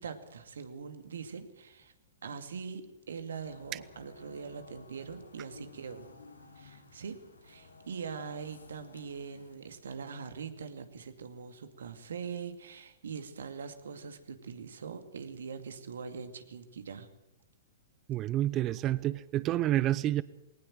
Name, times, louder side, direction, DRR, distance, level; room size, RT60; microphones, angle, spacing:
voice 1, 0.0-1.9 2.2-6.1 6.6-7.2 7.4-17.1, right 6 dB, 75° right, 2.4 m, -42 dB
sound 1, 3.3-9.6, left 3 dB, 90° left, 3.4 m, -55 dB
voice 2, 18.1-20.2, right 13 dB, 30° right, 0.7 m, -29 dB
20.0 x 19.0 x 7.7 m
hypercardioid pair, 115°, 0 cm